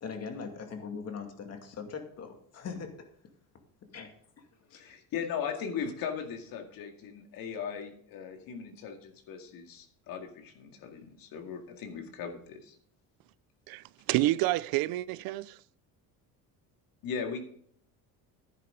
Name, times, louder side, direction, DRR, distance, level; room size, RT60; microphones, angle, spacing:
voice 1, 0.0-3.1 3.9-4.1 4.4-4.5, left 5 dB, 40° left, 2.3 m, -40 dB
voice 2, 4.7-12.8 17.0-17.4, left 7 dB, 65° left, 2.2 m, -38 dB
voice 3, 13.7-15.6, right 17 dB, 70° right, 0.5 m, -29 dB
11.0 x 10.0 x 3.8 m
cardioid pair, 115°, 37 cm